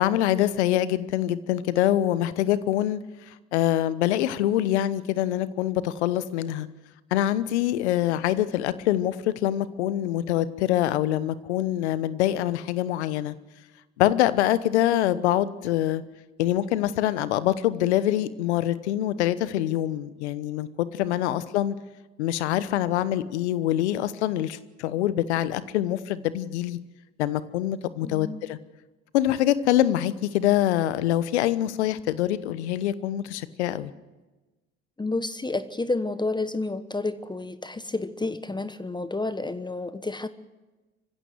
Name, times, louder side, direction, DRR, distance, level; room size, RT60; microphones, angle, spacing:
voice 1, 0.0-3.0 3.5-6.7 7.1-13.3 14.0-16.0 16.4-21.7 22.2-26.8 27.2-28.6 29.1-33.9, left 13 dB, 80° left, 16 dB, 1.1 m, -25 dB
voice 2, 28.0-28.4 35.0-40.3, left 2 dB, 15° left, 13 dB, 1.1 m, -30 dB
25.0 x 15.5 x 8.0 m, 1.2 s
hypercardioid pair, 60°, 33 cm